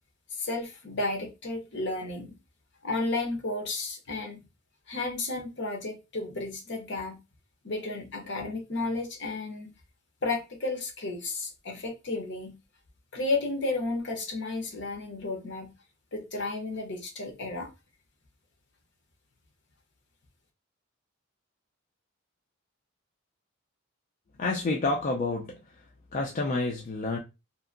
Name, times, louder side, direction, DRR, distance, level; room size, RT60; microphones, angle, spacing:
voice 1, 0.4-2.3 2.8-4.4 4.9-7.2 7.6-9.7 10.2-12.6 13.1-15.7 16.1-17.7, left 2 dB, 55° left, 0.8 m, -32 dB
voice 2, 24.4-25.8 26.1-27.2, left 3 dB, 35° left, 0.3 m, -29 dB
2.7 x 2.5 x 2.4 m
head